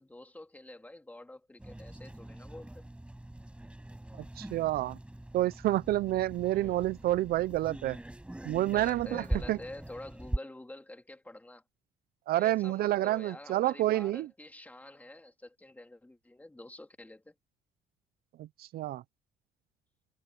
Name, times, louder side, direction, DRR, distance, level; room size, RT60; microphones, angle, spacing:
voice 1, 0.0-2.8 6.5-6.8 8.6-11.6 12.3-17.3, left 1 dB, 10° left, 3.1 m, -48 dB
sound 1, 1.6-10.4, right 1 dB, 5° right, 6.8 m, -41 dB
voice 2, 4.4-5.0 5.3-8.0 8.4-9.6 12.3-14.3 18.4-19.0, right 15 dB, 65° right, 0.5 m, -29 dB
cardioid pair, 110°, 17 cm